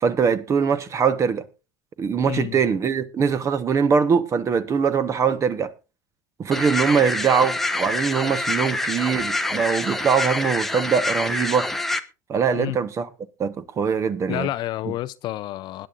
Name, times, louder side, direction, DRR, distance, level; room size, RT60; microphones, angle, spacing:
voice 1, 0.0-1.4 2.0-5.7 6.4-11.7 12.3-13.1 13.4-14.5 14.9-15.0, right 6 dB, 30° right, 1.1 m, -22 dB
voice 2, 2.2-2.6 12.5-12.8 14.3-15.9, left 15 dB, 50° left, 0.5 m, -29 dB
sound 1, 6.5-12.0, left 2 dB, 5° left, 0.9 m, -26 dB
20.5 x 10.0 x 2.5 m
supercardioid pair, 115°, 10 cm